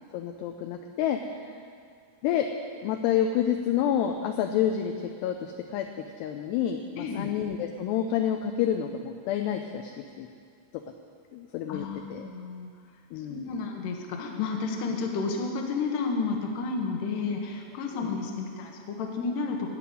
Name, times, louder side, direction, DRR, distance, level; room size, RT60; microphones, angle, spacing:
voice 1, 0.1-1.5 2.2-2.5 2.8-5.9 6.2-9.9 10.2-10.3 11.3-12.3 13.1-13.5 17.9-18.2, left 9 dB, 85° left, 5 dB, 2.4 m, -29 dB
voice 2, 7.0-7.3 11.7-12.7 13.3-19.8, left 4 dB, 65° left, 2 dB, 2.3 m, -31 dB
14.5 x 5.9 x 9.6 m, 2.2 s
omnidirectional pair, 5.3 m